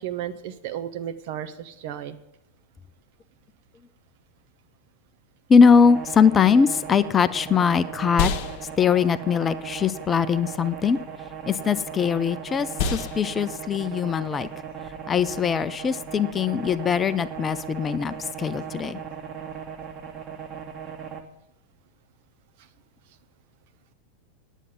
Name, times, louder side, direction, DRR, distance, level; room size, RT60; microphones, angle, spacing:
voice 1, 0.0-2.2, right 10 dB, 50° right, 9 dB, 1.0 m, -33 dB
voice 2, 5.5-8.3 8.8-11.0 11.4-14.5 15.1-19.0, left 6 dB, 20° left, 13 dB, 0.5 m, -21 dB
sound 1, 5.6-21.2, right 7 dB, 30° right, 1.7 m, -38 dB
sound 2, 8.1-16.4, left 5 dB, 40° left, 1.2 m, -34 dB
9.9 x 8.2 x 9.2 m, 0.86 s
figure-of-eight pair, 90°, 0 cm